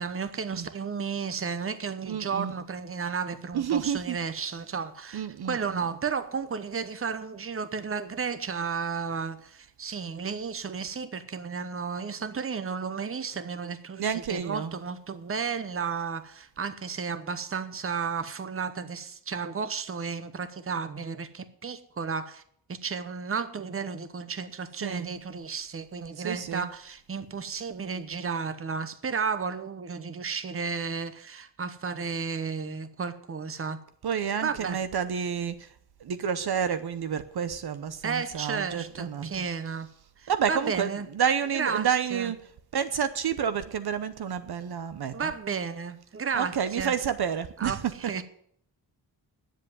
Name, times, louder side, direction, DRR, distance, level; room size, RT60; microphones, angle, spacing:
voice 1, 0.0-22.4 22.7-33.8 34.4-34.8 38.0-39.9 40.2-41.1 41.5-42.3 45.1-46.9 47.6-48.2, right 5 dB, 30° right, 0.9 m, -33 dB
voice 2, 2.1-2.5 3.5-4.2 5.1-5.8 14.0-14.7 24.8-25.1 26.2-26.7 34.0-35.7 36.0-39.3 40.3-42.4 42.7-45.3 46.3-47.8, right 8 dB, 60° right, 0.8 m, -29 dB
10.5 x 7.7 x 9.4 m
wide cardioid pair, 130°, 42 cm